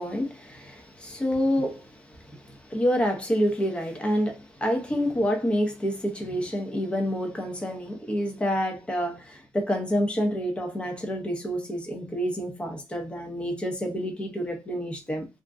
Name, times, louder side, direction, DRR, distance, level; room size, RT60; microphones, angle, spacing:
voice 1, 0.0-15.3, equal, 15° left, 0.7 m, -28 dB
2.5 x 2.1 x 3.5 m
wide cardioid pair, 145°, 7 cm